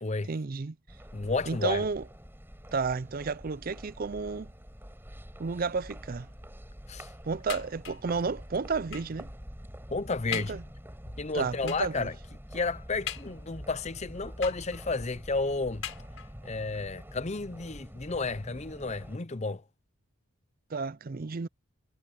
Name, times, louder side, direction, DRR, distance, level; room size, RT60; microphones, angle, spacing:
voice 1, 0.3-0.8 1.5-2.0 2.7-4.5 5.4-6.3 7.2-9.3 10.3-10.6 11.3-12.1 20.7-21.5, right 4 dB, 40° right, 0.5 m, -32 dB
sound 1, 0.9-19.2, equal, 10° right, 6.6 m, -46 dB
voice 2, 1.1-1.8 6.9-7.1 9.9-10.6 11.2-12.1 12.5-15.8 16.4-19.6, left 3 dB, 30° left, 0.7 m, -32 dB
sound 2, 7.5-8.2 8.9-9.2 9.8-9.9 10.3-10.7 11.7-12.0 13.1-13.7 14.4-15.0 15.8-16.5 17.3-17.4 17.7-17.8, left 10 dB, 65° left, 6.0 m, -41 dB
head